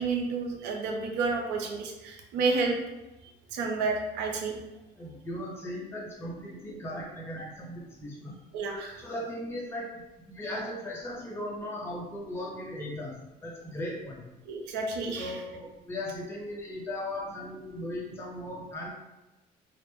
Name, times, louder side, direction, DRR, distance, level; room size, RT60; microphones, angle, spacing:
voice 1, 0.0-2.8 3.5-4.6 8.5-9.0 14.5-15.4, right 4 dB, 90° right, 2 dB, 0.5 m, -30 dB
voice 2, 5.0-8.4 9.0-9.9 10.3-13.2 13.4-14.3 15.2-18.9, left 1 dB, 15° left, -3 dB, 0.5 m, -37 dB
2.1 x 2.1 x 2.9 m, 1.0 s
cardioid pair, 110°, 17 cm